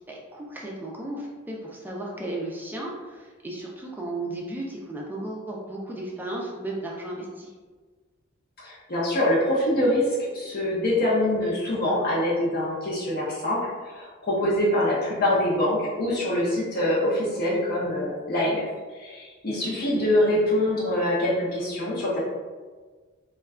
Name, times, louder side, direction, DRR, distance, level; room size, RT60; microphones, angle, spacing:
voice 1, 0.1-7.5 19.7-20.1, right 1 dB, 10° right, -3 dB, 0.3 m, -35 dB
voice 2, 8.6-18.7 18.9-22.2, left 1 dB, 45° left, -7 dB, 0.6 m, -24 dB
2.2 x 2.2 x 3.5 m, 1.4 s
head